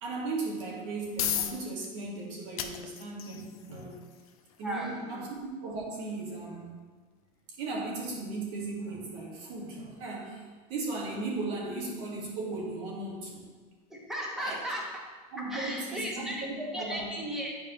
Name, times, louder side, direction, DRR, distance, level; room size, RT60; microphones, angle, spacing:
voice 1, 0.0-4.0 4.6-6.8 7.6-13.4 14.4-14.6 15.3-17.1, right 3 dB, 55° right, -3 dB, 1.8 m, -37 dB
sound 1, 0.7-15.6, left 10 dB, 80° left, 0.7 m, -43 dB
voice 2, 4.6-5.2 13.9-14.8 15.4-17.5, equal, ahead, -4 dB, 1.0 m, -36 dB
9.9 x 4.6 x 3.0 m, 1.5 s
supercardioid pair, 170°, 18 cm